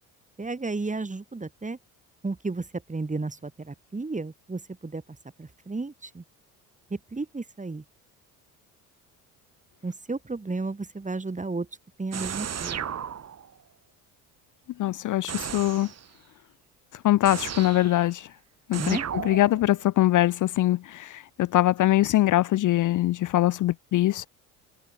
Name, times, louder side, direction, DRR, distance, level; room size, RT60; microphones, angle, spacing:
voice 1, 0.4-1.8 2.2-5.0 5.4-6.2 6.9-7.8 9.8-11.7 12.0-12.8 18.8-19.0, right 3 dB, 20° right, 3.7 m, -33 dB
sound 1, 12.1-13.6 15.3-16.1 17.3-18.1 18.7-19.8, right 8 dB, 40° right, 1.8 m, -35 dB
voice 2, 14.8-15.9 16.9-18.3 18.7-24.3, left 15 dB, 50° left, 0.6 m, -23 dB
hypercardioid pair, 70°, 41 cm